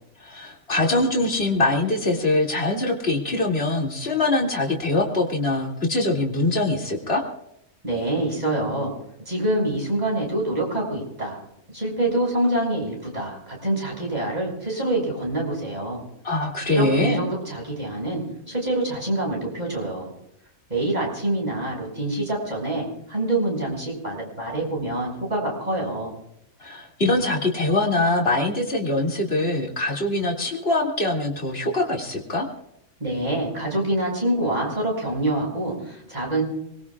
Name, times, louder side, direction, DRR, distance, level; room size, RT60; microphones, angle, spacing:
voice 1, 0.2-7.2 16.2-17.2 26.6-32.5, left 2 dB, 45° left, -1 dB, 2.9 m, -23 dB
voice 2, 7.8-8.9 9.3-11.4 11.7-16.0 16.7-20.1 20.7-26.2 33.0-36.4, right 1 dB, 30° right, -2 dB, 6.6 m, -26 dB
25.5 x 21.5 x 2.4 m, 0.79 s
omnidirectional pair, 1.5 m